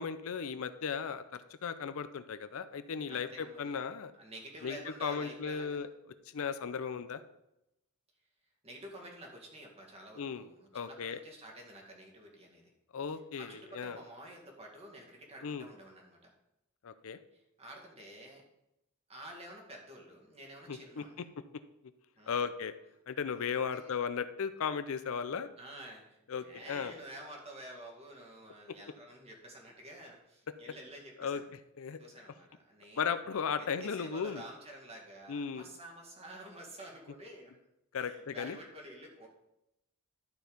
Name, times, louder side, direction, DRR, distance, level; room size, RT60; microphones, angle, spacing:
voice 1, 0.0-4.1 4.6-5.9 6.3-7.2 10.2-10.5 10.7-11.2 12.9-14.0 15.4-15.7 16.8-17.2 20.7-21.0 22.3-22.7 23.1-25.5 26.3-26.9 31.2-31.4 31.8-32.0 33.0-34.4 35.3-35.6 37.9-38.6, left 6 dB, 65° left, 12 dB, 0.5 m, -36 dB
voice 2, 3.1-3.9 4.1-5.8 8.6-12.7 13.1-16.3 17.3-18.4 19.1-21.2 22.2-22.4 23.5-24.0 25.6-31.5 32.0-37.6 38.0-39.3, right 1 dB, 30° right, 0 dB, 2.1 m, -50 dB
12.0 x 4.6 x 5.1 m, 0.86 s
head